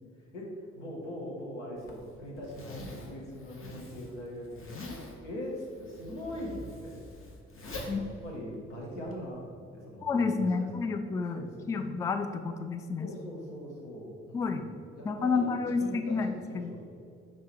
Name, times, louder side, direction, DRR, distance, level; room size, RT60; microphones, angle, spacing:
voice 1, 0.7-4.7 5.2-6.5 6.8-7.2 7.5-10.9 11.3-11.8 13.0-16.2 16.5-16.9, equal, 80° left, -2 dB, 1.3 m, -41 dB
Zipper (clothing), 1.8-9.2, left 1 dB, 35° left, 1.2 m, -45 dB
voice 2, 10.0-13.1 14.3-14.6 15.0-16.3 16.5-16.7, left 4 dB, 10° left, 8 dB, 0.3 m, -30 dB
5.6 x 4.8 x 4.7 m, 2.5 s
figure-of-eight pair, 45°, 35 cm